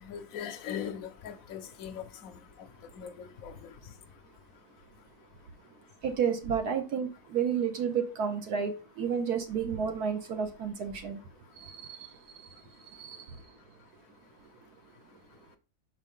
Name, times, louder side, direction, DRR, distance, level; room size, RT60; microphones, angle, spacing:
voice 1, 0.1-2.3 3.0-3.5, left 8 dB, 60° left, 0.9 m, -40 dB
voice 2, 6.0-11.2 11.5-13.5, right 7 dB, 65° right, 1.1 m, -32 dB
5.3 x 5.0 x 3.6 m
omnidirectional pair, 2.1 m